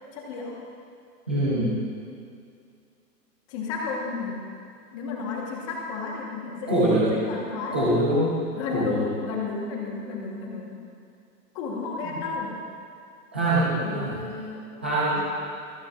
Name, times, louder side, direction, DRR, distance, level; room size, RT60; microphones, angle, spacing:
voice 1, 0.1-0.6 3.5-4.4 4.9-7.8 8.5-10.8 11.5-12.5 13.7-14.6 15.1-15.2, left 4 dB, 20° left, -2 dB, 1.3 m, -32 dB
voice 2, 1.3-1.8 6.7-7.1 7.7-8.3 8.7-9.1 12.0-12.2 13.3-14.1 14.8-15.2, right 1 dB, 5° right, -10 dB, 0.5 m, -23 dB
24.5 x 9.6 x 2.5 m, 2.4 s
hypercardioid pair, 165°, 50 cm